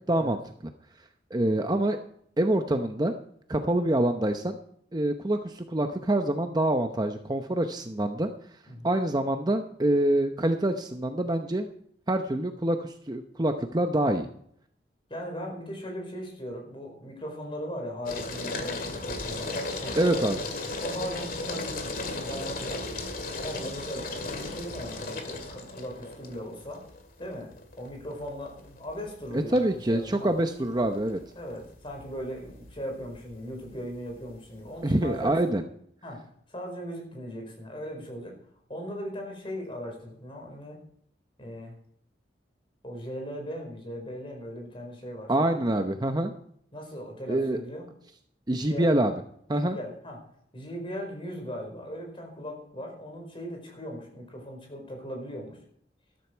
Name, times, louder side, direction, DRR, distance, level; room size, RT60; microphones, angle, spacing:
voice 1, 0.1-0.4 1.3-2.0 2.4-3.1 3.5-4.6 4.9-8.3 8.8-11.7 12.1-14.3 20.0-20.4 29.3-31.2 34.8-35.6 45.3-46.3 47.3-47.6 48.5-49.1 49.5-49.8, right 1 dB, 25° right, 6 dB, 0.8 m, -26 dB
voice 2, 15.1-19.5 19.8-20.2 20.8-22.8 23.4-26.8 27.2-27.5 27.8-30.3 31.3-35.4 36.0-36.2 36.5-38.4 38.7-40.8 41.4-41.7 42.8-45.6 46.7-47.9 48.7-48.9 49.5-50.2 50.5-55.6, equal, 30° left, 2 dB, 4.9 m, -38 dB
sound 1, 18.1-35.5, left 2 dB, 55° left, 2.2 m, -36 dB
13.5 x 13.0 x 4.6 m, 0.67 s
head